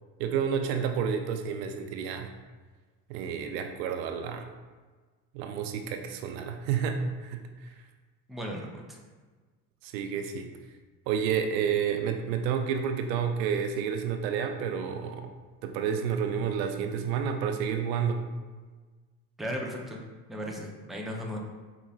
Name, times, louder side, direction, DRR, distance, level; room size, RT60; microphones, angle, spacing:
voice 1, 0.2-2.3 3.1-4.5 5.3-7.4 9.8-10.5 11.1-15.3 15.6-18.2, right 7 dB, 80° right, 6 dB, 0.6 m, -30 dB
voice 2, 8.3-9.0 19.4-20.0 20.3-21.4, equal, ahead, -1 dB, 0.5 m, -36 dB
4.6 x 2.9 x 2.3 m, 1.4 s
hypercardioid pair, 75°, 49 cm